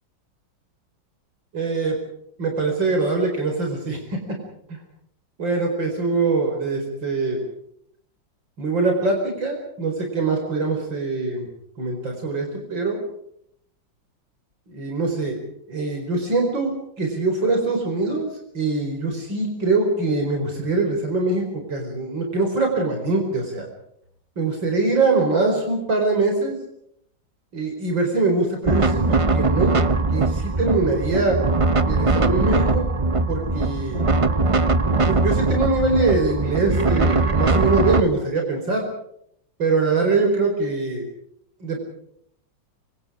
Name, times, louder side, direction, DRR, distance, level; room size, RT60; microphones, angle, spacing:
voice 1, 1.5-2.0 2.4-4.4 4.7-4.8 5.4-7.4 8.6-11.5 11.8-13.0 14.7-15.4 15.7-18.3 18.5-23.7 24.4-26.6 27.5-29.8 30.1-31.4 31.9-32.9 33.3-34.1 35.0-38.8 39.6-41.0 41.6-41.8, right 3 dB, 80° right, 2 dB, 5.5 m, -23 dB
sound 1, 28.6-38.0, right 3 dB, 40° right, 0.4 m, -21 dB
26.0 x 26.0 x 5.0 m, 0.71 s
omnidirectional pair, 2.0 m